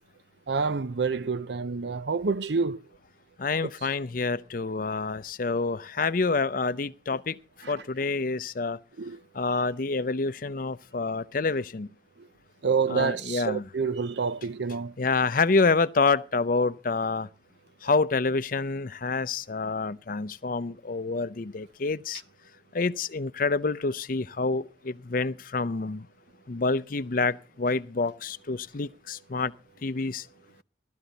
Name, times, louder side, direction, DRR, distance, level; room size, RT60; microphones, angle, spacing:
voice 1, 0.5-2.8 3.6-3.7 7.6-7.7 9.0-9.2 12.6-14.9, right 5 dB, 70° right, 0.6 m, -28 dB
voice 2, 3.4-7.4 7.7-8.8 9.3-11.9 12.9-13.6 15.0-17.3 17.8-22.2 22.7-26.1 26.5-29.5 29.8-30.3, left 4 dB, 50° left, 0.6 m, -27 dB
16.0 x 13.0 x 4.0 m
head